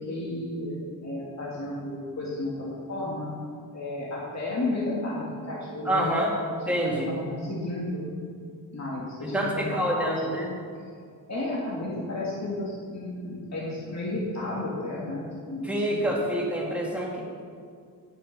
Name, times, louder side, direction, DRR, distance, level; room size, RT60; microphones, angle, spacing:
voice 1, 0.1-3.3 3.7-6.5 6.8-8.1 8.7-10.3 11.3-16.0, left 1 dB, 50° left, -6 dB, 2.0 m, -33 dB
voice 2, 5.9-6.3 6.7-7.1 9.3-10.5 15.6-17.2, right 1 dB, 5° right, -4 dB, 2.4 m, -27 dB
9.9 x 8.8 x 5.4 m, 2.2 s
wide cardioid pair, 90°, 36 cm